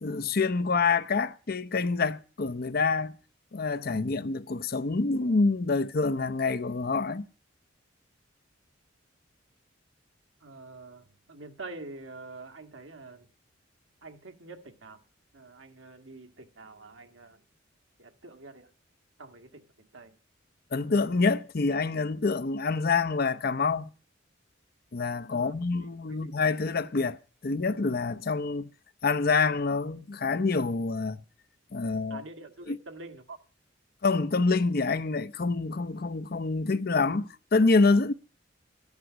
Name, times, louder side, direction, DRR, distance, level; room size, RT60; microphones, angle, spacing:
voice 1, 0.0-3.1 3.5-7.3 20.7-23.9 24.9-28.7 29.0-31.2 31.7-32.2 32.7-32.8 34.0-38.1, left 4 dB, 50° left, 0.7 m, -26 dB
voice 2, 10.4-13.3 14.0-15.0 15.3-17.4 18.0-18.7 19.2-20.1 25.3-25.5 25.8-26.3 32.1-33.4, right 3 dB, 85° right, 1.8 m, -46 dB
13.5 x 11.0 x 6.2 m
head